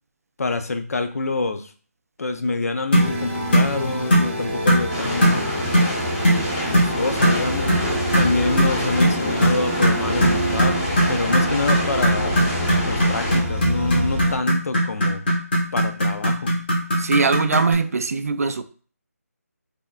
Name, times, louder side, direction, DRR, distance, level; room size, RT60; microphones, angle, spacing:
voice 1, 0.4-1.7 2.2-5.5 6.5-7.7 8.2-10.8 11.1-12.5 12.9-15.3 15.7-16.5, left 3 dB, 65° left, 8 dB, 0.6 m, -26 dB
sound 1, 2.9-3.1 3.5-3.7 4.1-4.3 4.7-4.9 5.2-5.4 5.7-5.9 6.2-6.4 6.7-6.9 7.2-7.4 7.7-7.8 8.1-17.7, equal, 40° left, 1.3 m, -19 dB
sound 2, 2.9-14.4, equal, 5° right, 0.7 m, -27 dB
sound 3, 4.9-13.4, left 1 dB, 20° left, 1.2 m, -28 dB
voice 2, 17.0-18.6, right 4 dB, 65° right, 10 dB, 0.3 m, -21 dB
3.5 x 3.4 x 2.4 m, 0.41 s
figure-of-eight pair, 165°, 9 cm